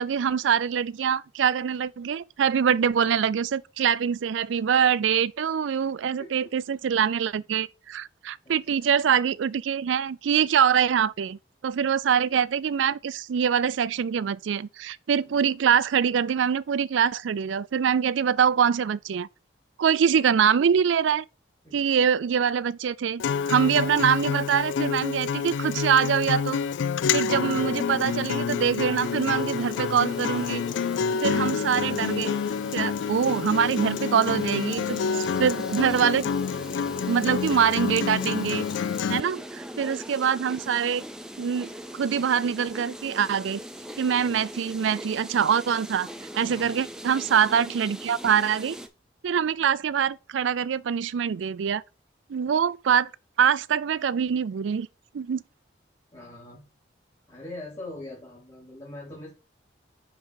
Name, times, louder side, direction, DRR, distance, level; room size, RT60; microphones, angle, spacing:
voice 1, 0.0-19.3 19.8-21.2 21.7-26.6 27.1-30.6 31.2-32.3 32.7-36.3 37.1-38.6 39.1-41.0 41.4-43.6 44.0-46.1 46.3-48.8 49.2-51.8 52.3-53.1 53.4-54.9 55.1-55.4, right 7 dB, 85° right, 0.4 m, -24 dB
voice 2, 6.0-6.5 8.4-8.8 11.8-12.0 15.2-15.4 21.6-21.8 39.0-39.7 44.1-44.4 46.4-46.8 56.1-56.6 57.3-59.3, left 2 dB, 25° left, 2.9 m, -43 dB
Acoustic guitar, 23.2-39.2, left 6 dB, 80° left, 0.3 m, -28 dB
sound 1, 29.0-48.9, equal, 5° right, 0.5 m, -40 dB
5.8 x 5.4 x 4.7 m
head